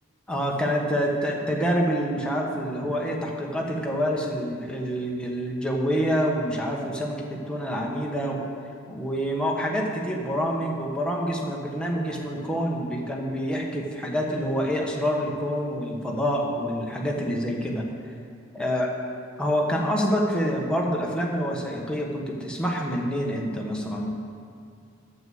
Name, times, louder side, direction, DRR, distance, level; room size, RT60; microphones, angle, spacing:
voice 1, 0.3-8.4 8.9-17.8 18.5-18.9 19.4-24.1, equal, 5° left, -2 dB, 1.3 m, -27 dB
9.1 x 7.9 x 7.8 m, 2.3 s
head